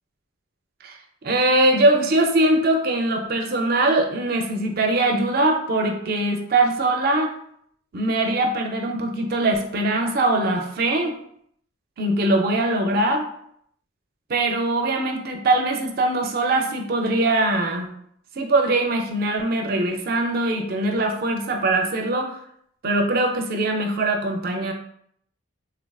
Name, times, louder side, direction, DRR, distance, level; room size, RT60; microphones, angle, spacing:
voice 1, 0.8-7.3 7.9-11.2 12.0-13.2 14.3-17.9 18.4-22.4 22.8-24.7, right 2 dB, 45° right, 3 dB, 0.4 m, -22 dB
3.5 x 2.3 x 2.3 m, 0.68 s
head